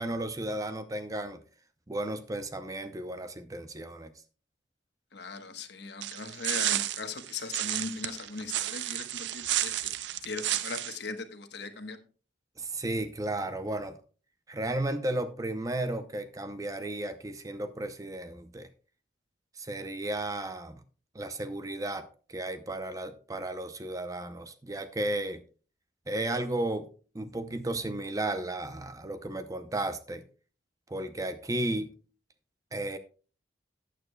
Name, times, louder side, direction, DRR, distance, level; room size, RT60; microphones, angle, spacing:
voice 1, 0.0-1.4 1.9-4.1 12.6-13.9 14.5-18.7 19.6-20.8 21.1-25.4 26.1-26.9 27.1-30.2 30.9-31.9 32.7-33.0, right 1 dB, 20° right, 0.6 m, -34 dB
voice 2, 5.1-9.9 10.2-12.0, left 4 dB, 65° left, 1.2 m, -39 dB
sound 1, 6.0-11.0, right 13 dB, 75° right, 0.5 m, -32 dB
14.5 x 9.1 x 2.3 m
head